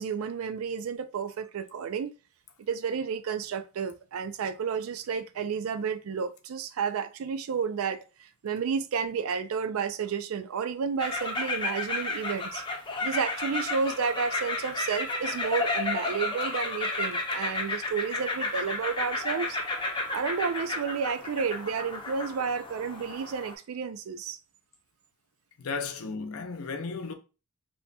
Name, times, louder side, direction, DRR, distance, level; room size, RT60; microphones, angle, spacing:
voice 1, 0.0-2.1 2.7-12.6 13.0-19.6 20.1-24.4, right 6 dB, 75° right, 0.4 m, -31 dB
sound 1, 11.0-23.5, left 3 dB, 20° left, 0.5 m, -32 dB
voice 2, 25.6-27.1, left 4 dB, 85° left, 0.6 m, -34 dB
2.9 x 2.2 x 4.0 m
head